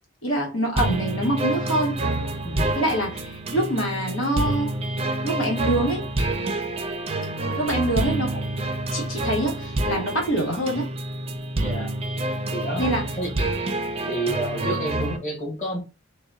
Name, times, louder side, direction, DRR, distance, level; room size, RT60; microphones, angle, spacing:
voice 1, 0.2-2.0 2.7-4.7 5.2-6.0 7.6-8.4 8.9-10.9 12.8-13.0, right 1 dB, 85° left, 1.3 m, -25 dB
sound 1, 0.8-15.2, right 2 dB, 30° right, 0.4 m, -27 dB
voice 2, 2.4-2.8 11.6-11.9 12.5-12.8 13.2-13.4 14.1-15.8, right 1 dB, 40° left, 1.3 m, -30 dB
4.0 x 2.1 x 3.7 m
head